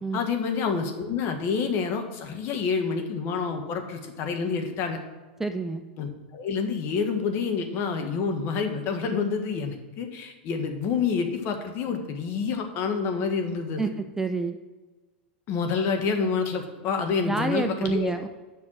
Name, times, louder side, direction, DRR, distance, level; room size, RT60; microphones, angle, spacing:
voice 1, 0.1-5.0 6.0-13.8 15.5-18.1, left 5 dB, 45° left, 5 dB, 1.5 m, -28 dB
voice 2, 5.4-5.8 13.8-14.6 17.2-18.3, right 3 dB, 5° right, 7 dB, 0.5 m, -28 dB
7.7 x 5.9 x 6.3 m, 1.3 s
hypercardioid pair, 110°, 6 cm